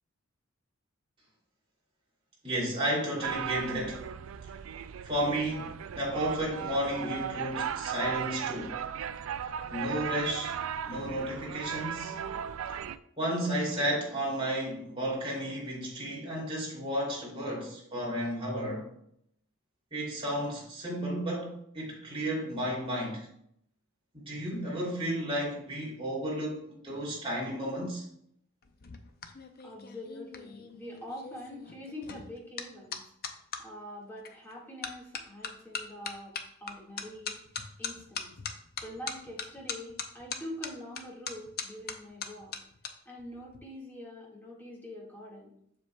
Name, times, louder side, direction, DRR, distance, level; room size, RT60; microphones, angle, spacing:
voice 1, 2.4-4.0 5.0-8.8 9.7-10.6 10.8-12.2 13.2-18.9 19.9-23.3 24.1-28.0, equal, 25° right, 2.8 m, -33 dB
sound 1, 3.2-13.0, right 8 dB, 85° right, 0.4 m, -36 dB
sound 2, 28.6-33.6 34.2-34.5 34.8-42.9 43.2-43.6, left 6 dB, 50° left, 0.6 m, -40 dB
voice 2, 29.6-33.0 33.6-36.3 36.6-37.4 37.8-38.3 38.8-42.5 43.1-45.5, left 1 dB, 10° left, 1.8 m, -44 dB
7.4 x 6.8 x 2.3 m
head